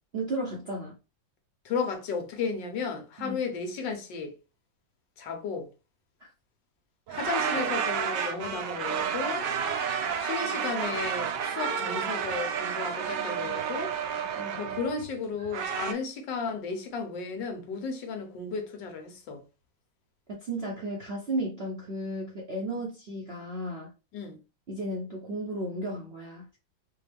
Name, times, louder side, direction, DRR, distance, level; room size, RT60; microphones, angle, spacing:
voice 1, 0.1-1.0 3.2-3.4 6.2-6.3 14.4-14.6 20.4-23.9 24.7-26.6, right 1 dB, 55° right, 0.7 m, -34 dB
voice 2, 1.6-4.3 5.2-5.7 7.1-9.5 10.2-13.9 14.6-19.4 24.1-24.4, left 5 dB, 75° left, 1.5 m, -34 dB
sound 1, 7.1-15.9, right 7 dB, 75° right, 1.2 m, -31 dB
4.7 x 2.3 x 3.3 m
omnidirectional pair, 2.1 m